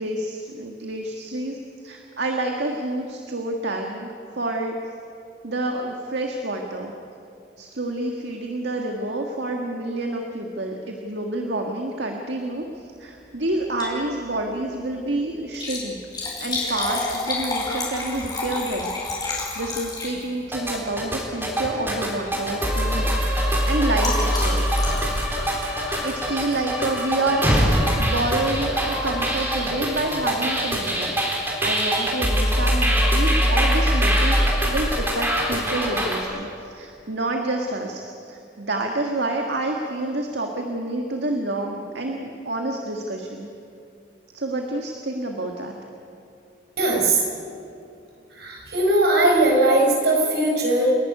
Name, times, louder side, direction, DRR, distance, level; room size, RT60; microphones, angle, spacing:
voice 1, 0.0-1.6 1.8-4.8 5.4-6.9 7.6-16.0 16.4-18.9 19.2-23.1 23.4-24.7 26.0-31.2 31.6-43.5 44.3-45.8, right 2 dB, 80° right, 2 dB, 1.8 m, -28 dB
Liquid, 13.6-14.0 14.4-14.5 15.4-20.5 21.5-21.8 22.1-22.4 22.7-26.8 27.7-28.0 28.5-28.6 28.8-28.9, left 2 dB, 25° left, 5.2 m, -30 dB
sound 1, 20.5-36.2, equal, 15° right, 3.7 m, -23 dB
voice 2, 46.8-47.2 48.4-51.0, right 1 dB, 65° right, -1 dB, 5.1 m, -19 dB
30.0 x 11.5 x 9.8 m, 2.6 s
head